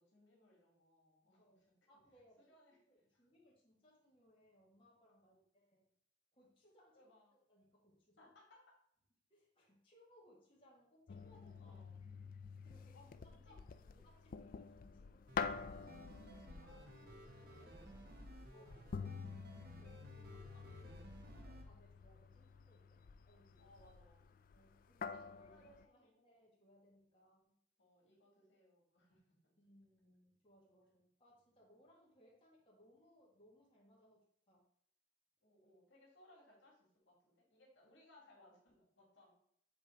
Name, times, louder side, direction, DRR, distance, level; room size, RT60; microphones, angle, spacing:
voice 1, 0.0-1.5 2.4-2.8 3.1-3.2 6.9-7.4 8.2-8.6 11.6-12.0 12.9-14.0 16.6-19.5 20.4-20.9 23.6-24.4 25.1-26.3 27.8-29.5 35.4-39.3, left 1 dB, 80° left, -2 dB, 2.3 m, -68 dB
voice 2, 1.4-2.5 2.9-5.9 6.3-8.3 9.3-11.8 12.5-13.1 13.5-13.6 13.9-15.8 18.5-19.3 19.7-23.7 24.5-27.6 29.6-34.6, equal, 30° left, -5 dB, 1.8 m, -69 dB
sound 1, 11.1-25.8, left 5 dB, 50° left, 0.3 m, -49 dB
sound 2, 15.3-21.6, right 1 dB, 55° right, 1.0 m, -56 dB
7.5 x 3.4 x 4.5 m, 0.67 s
head